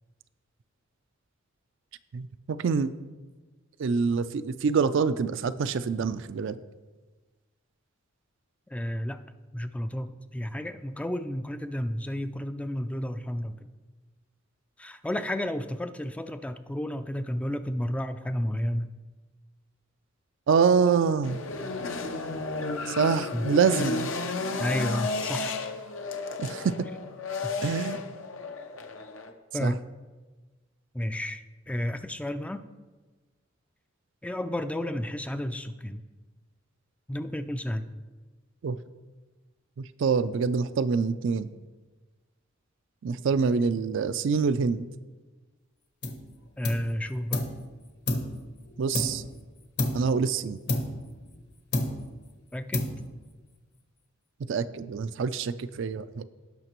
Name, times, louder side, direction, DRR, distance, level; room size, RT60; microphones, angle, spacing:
voice 1, 2.1-2.9 3.8-6.6 20.5-21.4 22.9-24.1 26.4-26.7 27.6-28.0 29.6-29.7 38.6-38.8 39.8-41.5 43.0-44.9 48.8-49.2 49.9-50.6 54.5-56.2, right 5 dB, 65° right, 13 dB, 0.4 m, -26 dB
voice 2, 8.7-9.2 9.5-13.7 14.8-18.9 23.3-23.5 24.6-25.5 29.5-29.8 30.9-31.4 31.7-32.6 34.2-36.0 37.1-37.9 46.6-47.4 52.5-52.9, left 1 dB, 5° left, 9 dB, 0.3 m, -32 dB
sound 1, 21.2-29.3, left 3 dB, 75° left, 0.8 m, -33 dB
sound 2, 46.0-46.3 46.6-47.6 48.1-49.4 49.8-50.2 50.7-51.4 51.7-52.2 52.7-53.3, left 2 dB, 55° left, 1.1 m, -30 dB
17.5 x 5.8 x 3.0 m, 1.3 s
head